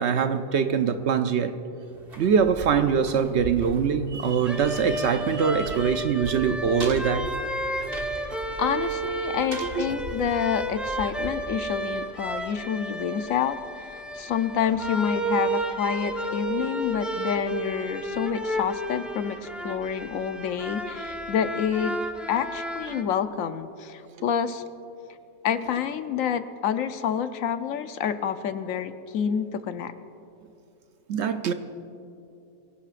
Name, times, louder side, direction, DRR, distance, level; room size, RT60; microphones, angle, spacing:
voice 1, 0.0-1.6 2.2-7.3 9.6-9.9 31.1-31.5, right 6 dB, 65° right, 9 dB, 0.8 m, -23 dB
footsteps steel, 1.9-12.7 13.0-13.1, right 2 dB, 45° right, 1.8 m, -40 dB
sound 1, 4.4-23.0, right 1 dB, ahead, 0.6 m, -32 dB
voice 2, 8.2-21.9 22.3-24.6 25.4-29.9, left 8 dB, 75° left, 10 dB, 1.1 m, -28 dB
24.0 x 16.5 x 2.5 m, 2.8 s
omnidirectional pair, 1.4 m